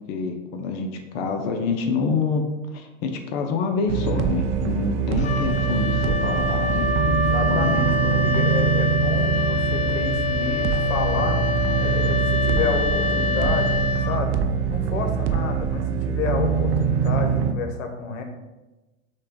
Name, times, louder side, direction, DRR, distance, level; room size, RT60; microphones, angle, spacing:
voice 1, 0.1-2.5 2.7-7.0 7.5-7.7, left 4 dB, 55° left, 4 dB, 0.7 m, -27 dB
sound 1, 3.9-17.5, right 7 dB, 65° right, 0.6 m, -23 dB
Wind instrument woodwind instrument, 5.2-14.6, left 4 dB, 20° left, 0.3 m, -26 dB
voice 2, 7.1-14.3 14.7-18.2, left 5 dB, 80° left, 5 dB, 1.0 m, -30 dB
6.3 x 2.3 x 3.6 m, 1.1 s
hypercardioid pair, 110°, 38 cm